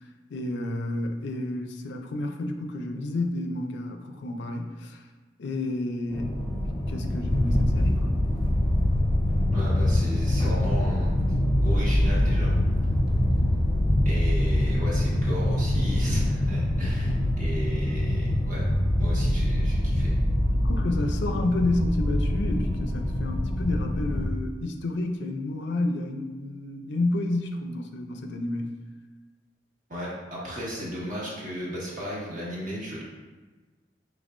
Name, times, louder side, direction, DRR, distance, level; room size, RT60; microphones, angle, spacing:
voice 1, 0.3-5.0 5.4-6.3 6.7-8.2 20.6-28.7, left 2 dB, 65° left, 5 dB, 0.4 m, -30 dB
sound 1, 6.1-24.3, left 1 dB, 20° left, 0.6 m, -24 dB
voice 2, 9.5-11.3 11.6-12.5 14.0-18.7 19.0-20.1 29.9-33.0, equal, 45° right, -6 dB, 1.4 m, -35 dB
5.3 x 3.3 x 2.5 m, 1.3 s
head